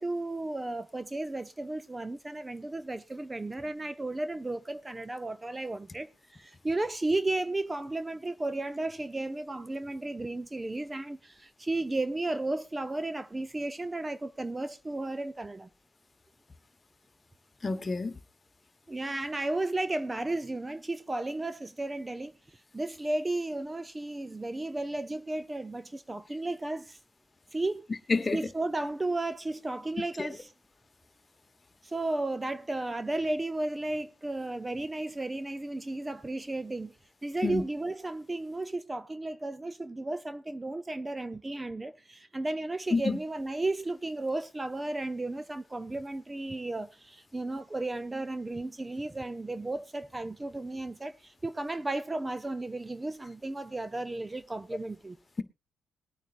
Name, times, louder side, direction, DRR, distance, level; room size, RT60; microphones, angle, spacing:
voice 1, 0.0-15.7 18.9-27.0 27.5-27.9 28.3-30.5 31.8-36.9 37.2-55.2, right 2 dB, 20° right, 0.7 m, -34 dB
voice 2, 17.6-18.1 28.1-28.4 30.2-30.3 37.4-37.6 42.9-43.2, left 3 dB, 30° left, 1.3 m, -28 dB
21.5 x 9.0 x 2.5 m
supercardioid pair, 55°, 0 cm